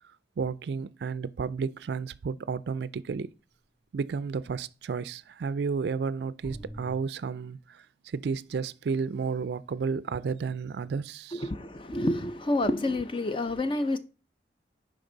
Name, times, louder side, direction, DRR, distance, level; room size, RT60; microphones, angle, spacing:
voice 1, 0.4-3.3 3.9-11.4, right 5 dB, 65° right, 0.4 m, -32 dB
sound 1, 1.8-2.0 6.4-6.9, right 1 dB, 10° left, 3.0 m, -42 dB
voice 2, 11.3-14.0, left 1 dB, 30° left, 0.6 m, -28 dB
8.9 x 5.2 x 3.9 m
head